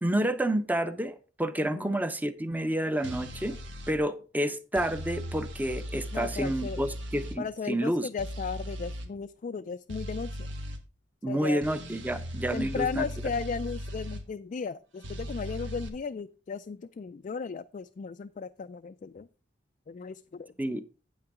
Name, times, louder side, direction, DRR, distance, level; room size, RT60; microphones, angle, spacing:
voice 1, 0.0-3.6 3.9-8.1 11.2-13.1 20.6-20.8, right 1 dB, 10° right, 0.7 m, -29 dB
sound 1, 3.0-4.0 4.8-7.4 8.2-9.1 9.9-10.8 11.6-14.2 15.0-15.9, equal, 85° right, 1.6 m, -38 dB
voice 2, 6.1-6.8 7.4-10.5 11.3-11.6 12.5-19.3 19.9-20.5, left 5 dB, 45° left, 0.3 m, -36 dB
8.8 x 8.7 x 3.6 m
head